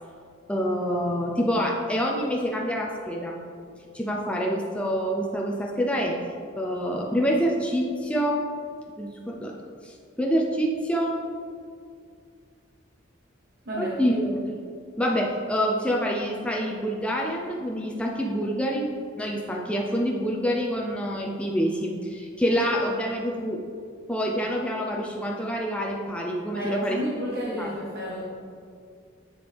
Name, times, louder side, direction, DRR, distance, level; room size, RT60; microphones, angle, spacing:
voice 1, 0.5-3.4 3.9-6.2 6.6-8.4 9.0-9.5 9.8-11.2 13.8-14.4 15.0-18.9 19.2-23.6 24.1-27.0 27.6-27.7, equal, 5° left, -1 dB, 0.5 m, -26 dB
voice 2, 13.6-14.0 26.5-28.2, equal, 50° right, -6 dB, 1.1 m, -31 dB
7.9 x 7.2 x 3.4 m, 2.3 s
head